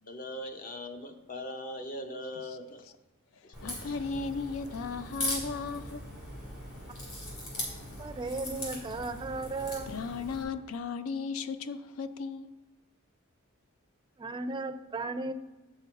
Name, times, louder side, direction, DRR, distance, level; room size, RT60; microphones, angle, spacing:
voice 1, 0.0-2.9 3.4-4.0, left 1 dB, 40° left, 0.7 m, -41 dB
Crack, 3.5-10.4, left 1 dB, 65° left, 2.9 m, -39 dB
voice 2, 3.6-6.0 9.9-12.5, left 4 dB, 80° left, 0.4 m, -36 dB
voice 3, 8.0-9.9 14.2-15.3, right 3 dB, 20° right, 0.4 m, -35 dB
8.1 x 5.5 x 4.6 m
head